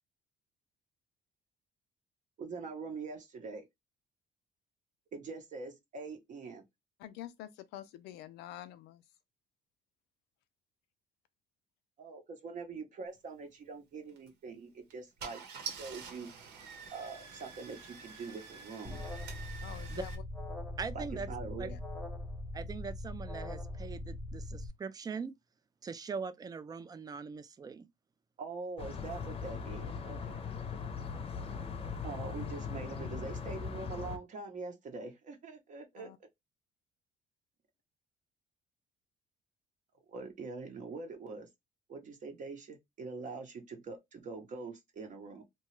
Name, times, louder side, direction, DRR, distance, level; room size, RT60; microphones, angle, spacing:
voice 1, 2.4-3.7 5.1-6.6 12.0-16.3 16.9-19.0 20.9-21.8 28.4-30.4 32.0-36.1 40.1-41.5 41.9-45.5, right 4 dB, 45° right, 0.7 m, -44 dB
voice 2, 7.0-9.0 19.6-20.2 21.7-21.8 36.0-36.2, left 12 dB, 90° left, 0.5 m, -47 dB
Car / Engine starting, 14.1-14.3 14.9-15.0 15.2-20.1, right 5 dB, 80° right, 1.1 m, -47 dB
Alarm, 18.8-24.7, left 1 dB, ahead, 0.8 m, -41 dB
voice 3, 20.8-21.3 21.6-21.7 22.5-25.3 25.8-27.9, right 5 dB, 25° right, 0.3 m, -41 dB
sound 1, 28.8-34.2, left 5 dB, 35° left, 0.6 m, -40 dB
2.8 x 2.3 x 3.0 m
cardioid pair, 110°, 17 cm